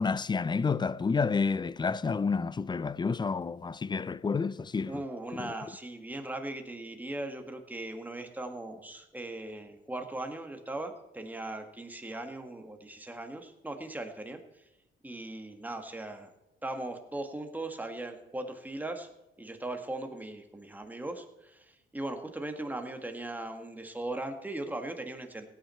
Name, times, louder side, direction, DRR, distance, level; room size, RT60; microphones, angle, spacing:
voice 1, 0.0-5.0 5.3-5.5, left 5 dB, 20° left, 0.4 m, -30 dB
voice 2, 4.8-14.6 15.0-16.3 16.6-19.1 19.4-25.5, right 2 dB, 10° right, 1.9 m, -39 dB
17.0 x 9.4 x 4.5 m
cardioid pair, 90°, 20 cm